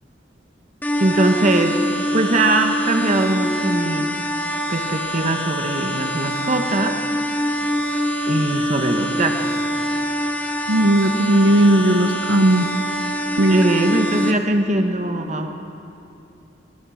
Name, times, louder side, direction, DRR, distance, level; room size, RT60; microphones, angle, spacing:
sound 1, 0.8-14.3, equal, 10° left, 1.5 m, -24 dB
voice 1, 1.0-1.8 2.1-4.1 4.7-7.0 8.3-9.7 13.5-15.5, right 2 dB, 40° right, 5 dB, 1.4 m, -21 dB
voice 2, 10.7-12.7 13.4-13.6, right 1 dB, 80° right, 6 dB, 1.0 m, -16 dB
24.0 x 21.0 x 6.5 m, 2.7 s
head